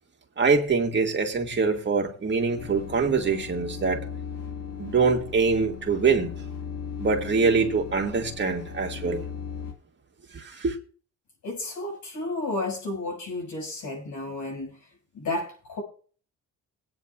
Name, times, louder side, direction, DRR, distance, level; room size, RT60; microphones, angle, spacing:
voice 1, 0.4-4.1 4.8-6.3 7.0-9.3 10.3-10.8, right 4 dB, 35° right, 1.9 m, -24 dB
sound 1, 2.6-9.7, left 7 dB, 90° left, 1.7 m, -37 dB
voice 2, 11.4-14.8 15.1-15.8, left 2 dB, 75° left, 5.8 m, -32 dB
20.5 x 9.0 x 2.4 m
cardioid pair, 90°, 30 cm